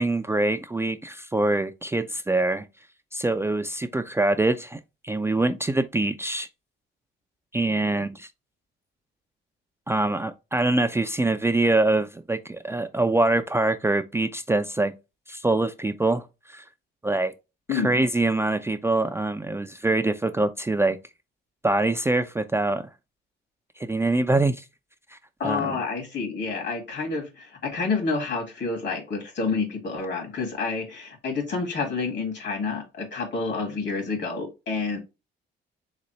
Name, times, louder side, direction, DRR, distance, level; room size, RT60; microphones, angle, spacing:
voice 1, 0.0-2.6 3.1-6.5 7.5-8.3 9.9-14.9 15.3-16.6 17.0-17.3 17.7-21.0 21.6-22.9 23.8-24.6 25.4-25.8, right 2 dB, 10° right, 0.4 m, -24 dB
voice 2, 25.4-35.0, left 4 dB, 60° left, 2.3 m, -29 dB
4.0 x 3.7 x 3.1 m
cardioid pair, 90°, 20 cm